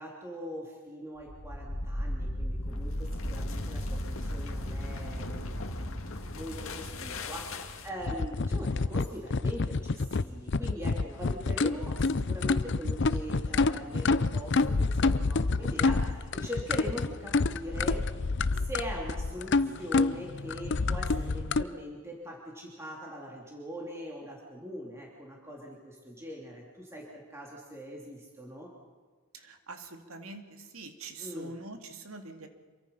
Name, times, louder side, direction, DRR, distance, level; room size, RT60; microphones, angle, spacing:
voice 1, 0.0-5.5 5.9-6.0 6.3-18.0 18.5-28.7 31.2-31.6, equal, 10° right, -3 dB, 3.1 m, -42 dB
sound 1, 1.2-8.1, left 1 dB, 70° left, 2.1 m, -35 dB
sound 2, 8.0-21.6, left 3 dB, 55° left, 0.6 m, -28 dB
voice 2, 29.5-30.4 30.7-32.5, right 3 dB, 75° right, 5 dB, 2.4 m, -44 dB
27.5 x 23.5 x 5.7 m, 1.4 s
head